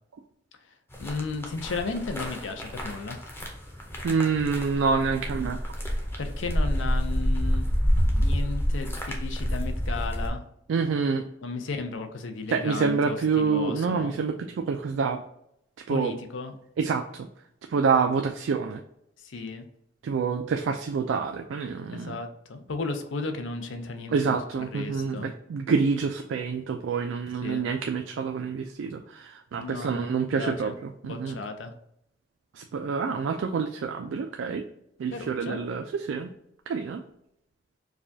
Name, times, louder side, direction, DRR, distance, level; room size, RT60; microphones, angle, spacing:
sound 1, 0.9-10.3, equal, 10° left, 0.6 m, -28 dB
voice 1, 1.0-3.2 6.2-7.7 8.0-10.4 11.4-14.2 15.9-16.5 19.2-19.7 21.9-24.1 24.7-25.3 27.4-27.7 29.5-30.8 31.0-31.7 35.1-35.6, left 4 dB, 85° left, 7 dB, 0.6 m, -34 dB
voice 2, 4.0-5.6 10.7-11.3 12.5-15.2 15.9-16.1 16.8-17.3 17.7-18.8 20.0-22.2 24.1-31.4 32.5-34.7 35.0-36.3 36.7-37.0, right 5 dB, 80° right, 4 dB, 0.3 m, -27 dB
4.7 x 2.3 x 2.6 m, 0.76 s
head